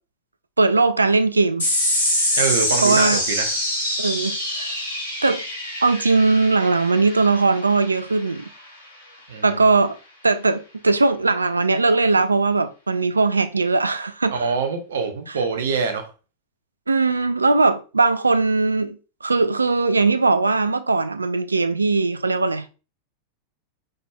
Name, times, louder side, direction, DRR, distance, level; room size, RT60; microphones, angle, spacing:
voice 1, 0.6-1.7 2.8-3.2 4.0-4.8 5.2-5.4 5.8-8.4 9.4-10.0 10.2-14.5 16.9-22.7, right 3 dB, 80° right, 0.4 m, -19 dB
sound 1, 1.6-8.4, left 1 dB, 70° left, 2.0 m, -25 dB
voice 2, 2.4-3.5 9.3-9.6 14.3-16.1, right 5 dB, 65° right, 0.8 m, -24 dB
5.0 x 4.1 x 2.3 m
figure-of-eight pair, 90°, 0 cm